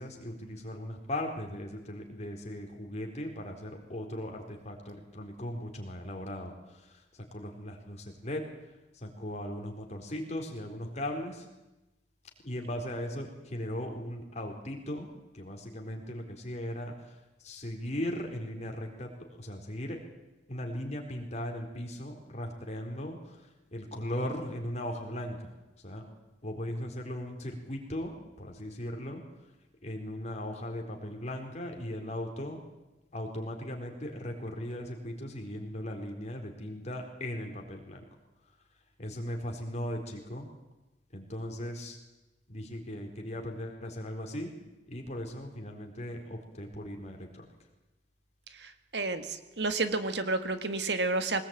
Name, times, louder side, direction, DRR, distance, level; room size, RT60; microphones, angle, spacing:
voice 1, 0.0-6.5 7.3-8.0 8.2-8.4 9.0-11.3 12.4-15.1 15.4-16.9 17.5-19.1 19.4-20.0 20.5-23.2 23.7-25.4 25.8-26.0 26.4-28.1 28.4-29.2 29.8-32.6 33.1-38.0 39.0-40.5 41.1-41.9 42.5-44.5 44.9-47.2, left 1 dB, 40° left, 2 dB, 4.3 m, -38 dB
voice 2, 48.6-51.4, right 3 dB, 75° right, 9 dB, 1.8 m, -31 dB
22.5 x 19.5 x 9.1 m, 1.0 s
head